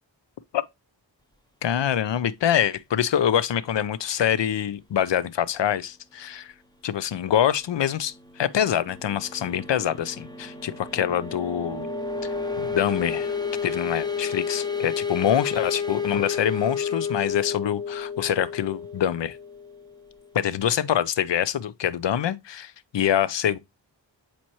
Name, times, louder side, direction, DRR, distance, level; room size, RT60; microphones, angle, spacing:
voice 1, 1.6-6.5 6.8-11.9 12.6-13.3 13.6-19.4 20.3-23.6, left 10 dB, 65° left, 0.6 m, -25 dB
sound 1, 7.7-20.3, left 5 dB, 10° left, 0.6 m, -31 dB
7.3 x 4.4 x 3.0 m
wide cardioid pair, 75°, 46 cm